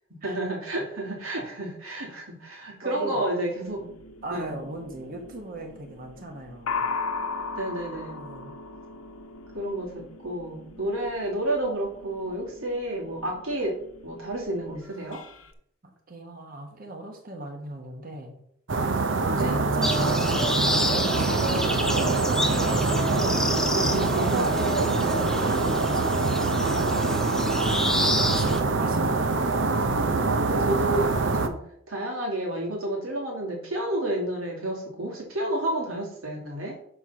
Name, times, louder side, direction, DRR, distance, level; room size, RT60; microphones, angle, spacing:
voice 1, 0.2-3.9 4.3-4.5 7.6-8.2 9.5-13.8 14.0-15.2 19.4-19.6 23.6-24.4 30.5-31.6 31.9-36.8, right 1 dB, 85° right, -2 dB, 2.8 m, -30 dB
voice 2, 2.8-3.3 4.2-6.8 8.1-8.5 10.7-10.9 16.1-18.3 19.2-22.9 23.4-24.8 25.2-29.2, right 2 dB, 45° right, 3 dB, 1.2 m, -37 dB
sound 1, 3.7-15.5, left 4 dB, 85° left, 0.9 m, -38 dB
sound 2, 18.7-31.5, right 3 dB, 60° right, 0.7 m, -24 dB
sound 3, 19.8-28.6, left 1 dB, 5° left, 0.6 m, -29 dB
6.3 x 4.5 x 5.6 m, 0.69 s
head